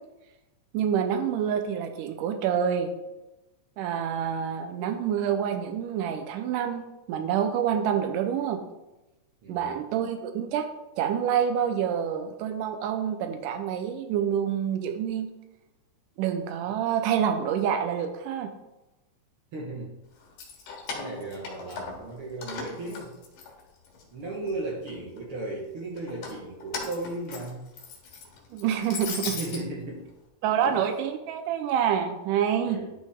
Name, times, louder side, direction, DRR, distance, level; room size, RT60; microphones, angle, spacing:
voice 1, 0.7-2.9 3.8-8.6 9.5-10.7 11.0-15.3 16.2-18.5 28.5-29.4 30.4-32.8, right 8 dB, 90° right, 6 dB, 2.2 m, -27 dB
voice 2, 19.5-19.9 20.9-23.1 24.1-27.7 29.2-30.0 30.5-30.8 32.6-32.9, right 2 dB, 60° right, -3 dB, 1.6 m, -36 dB
Keys jangling, 20.2-22.1 22.4-24.0 24.4-25.2 26.0-29.6, left 5 dB, 90° left, 3.2 m, -38 dB
11.5 x 5.2 x 3.5 m, 0.99 s
omnidirectional pair, 3.7 m